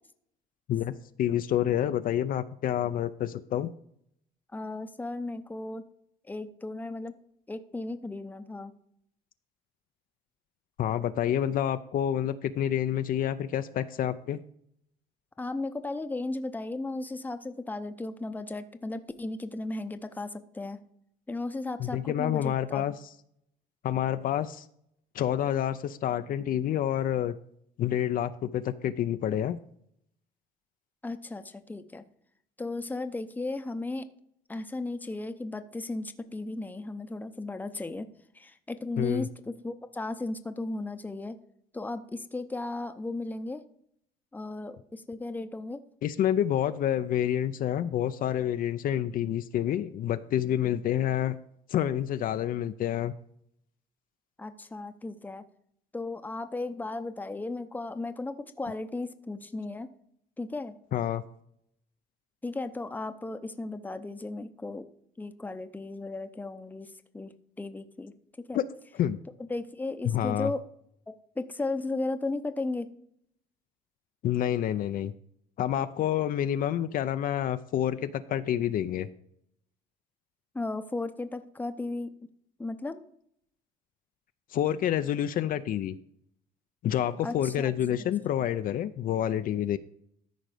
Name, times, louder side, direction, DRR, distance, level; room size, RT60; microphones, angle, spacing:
voice 1, 0.7-3.7 10.8-14.4 21.8-22.9 23.8-24.7 25.1-27.3 27.8-29.6 39.0-39.3 46.0-51.4 51.7-53.1 60.9-61.2 68.5-68.7 69.0-69.2 70.1-70.5 74.2-75.1 75.6-79.1 84.5-86.0 86.8-89.8, left 10 dB, 55° left, 10 dB, 0.5 m, -28 dB
voice 2, 4.5-5.8 6.3-7.2 7.5-8.7 15.4-20.8 21.3-22.8 31.0-32.1 32.6-34.1 34.5-38.1 38.3-41.4 41.7-43.6 44.3-45.8 54.4-55.4 55.9-59.9 60.4-60.7 62.4-64.9 65.2-67.3 67.6-68.6 69.4-70.6 71.1-72.9 80.5-82.1 82.6-83.0 87.2-87.7, left 2 dB, 10° left, 9 dB, 0.7 m, -35 dB
13.5 x 5.0 x 5.0 m, 0.69 s
cardioid pair, 110°, 17 cm